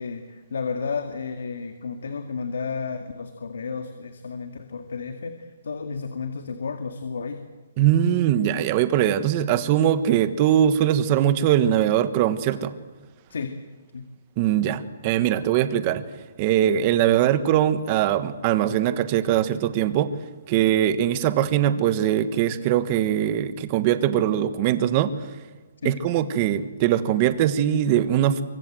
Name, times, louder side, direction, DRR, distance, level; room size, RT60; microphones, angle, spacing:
voice 1, 0.0-7.4 13.3-13.6 13.9-14.1 25.8-26.0, left 5 dB, 80° left, 6 dB, 2.1 m, -32 dB
voice 2, 7.8-12.7 14.4-16.0 16.4-20.1 20.5-25.1 25.8-28.4, right 11 dB, 25° right, 12 dB, 1.3 m, -21 dB
26.0 x 24.5 x 7.7 m, 1.2 s
hypercardioid pair, 170°, 0 cm